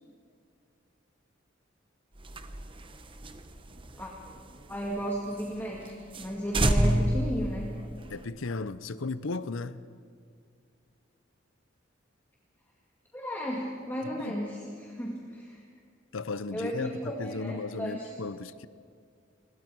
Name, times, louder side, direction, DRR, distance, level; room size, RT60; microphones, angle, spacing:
sound 1, 2.2-5.0 5.4-5.5 5.8-5.9 6.1-6.3 6.5-8.2, right 1 dB, 25° right, 1.0 m, -28 dB
voice 1, 4.7-7.7 13.1-15.6 16.5-18.1, equal, 10° left, 2.0 m, -34 dB
voice 2, 8.1-9.8 14.2-14.4 16.1-18.7, left 3 dB, 90° left, 0.7 m, -35 dB
29.0 x 21.5 x 4.7 m
head